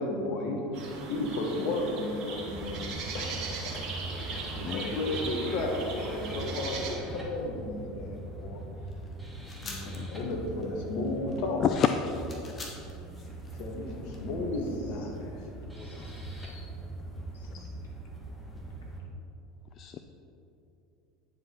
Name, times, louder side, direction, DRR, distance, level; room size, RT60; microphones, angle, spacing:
voice 1, 0.0-3.7 4.2-8.6 9.6-11.6 13.5-15.1, left 2 dB, 60° left, 1 dB, 1.4 m, -34 dB
sound 1, 0.7-6.9, right 4 dB, 55° right, 1.3 m, -39 dB
sound 2, 2.4-19.0, right 1 dB, ahead, 1.5 m, -41 dB
sound 3, 8.9-14.2, left 2 dB, 30° left, 1.5 m, -46 dB
voice 2, 11.6-12.5 17.5-17.7 19.8-20.0, left 8 dB, 45° left, 7 dB, 0.3 m, -29 dB
voice 3, 13.8-14.4 14.8-16.7 17.3-17.5, left 3 dB, 75° left, -1 dB, 1.5 m, -57 dB
9.3 x 4.9 x 4.4 m, 2.7 s
hypercardioid pair, 75°, 0 cm